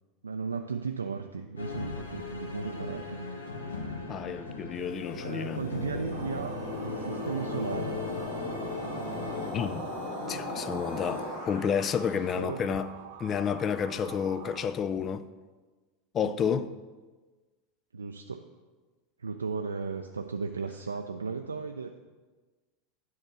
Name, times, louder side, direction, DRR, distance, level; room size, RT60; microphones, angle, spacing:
voice 1, 0.2-3.5 5.2-8.0 12.4-12.8 14.0-14.1 16.2-16.7 17.9-18.4 19.2-22.0, right 5 dB, 75° right, 0.4 m, -36 dB
sound 1, 1.6-9.5, left 4 dB, 75° left, 1.2 m, -39 dB
voice 2, 4.1-5.6 9.5-9.8 10.3-12.9 13.2-15.2 16.1-16.7, left 7 dB, 30° left, 0.4 m, -30 dB
sound 2, 4.8-12.2, left 1 dB, 50° left, 1.5 m, -38 dB
Motor vehicle (road) / Siren, 6.1-14.6, right 9 dB, 55° right, 0.8 m, -46 dB
9.6 x 3.8 x 6.6 m
figure-of-eight pair, 80°, 0 cm